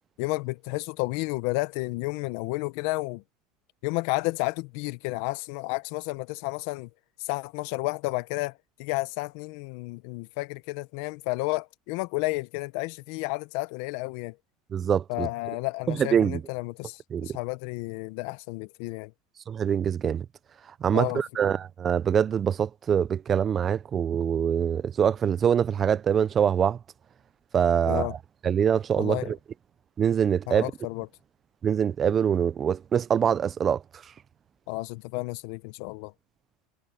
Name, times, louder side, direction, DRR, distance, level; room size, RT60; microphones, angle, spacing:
voice 1, 0.2-3.2 3.8-6.9 7.2-14.4 15.1-19.1 20.9-21.2 27.9-28.1 29.0-29.3 30.5-31.1 34.7-36.1, left 23 dB, 70° left, 0.8 m, -31 dB
voice 2, 14.7-15.3 15.9-16.4 17.1-17.3 19.5-20.2 20.8-26.8 27.5-28.2 28.4-29.4 30.0-30.7 31.6-33.8, right 8 dB, 30° right, 0.6 m, -24 dB
supercardioid pair, 115°, 0 cm